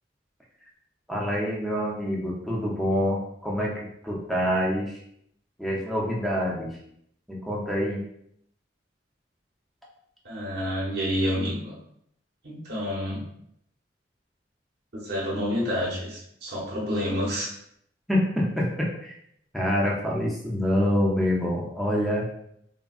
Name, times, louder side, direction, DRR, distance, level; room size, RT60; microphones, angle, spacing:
voice 1, 1.1-5.0 5.6-6.7 7.3-8.0 18.1-18.7 19.0-19.1 19.5-22.2, equal, ahead, -4 dB, 0.6 m, -26 dB
voice 2, 10.2-11.8 12.4-13.2 14.9-17.5, equal, 60° right, -5 dB, 0.9 m, -29 dB
3.6 x 2.2 x 2.4 m, 0.72 s
head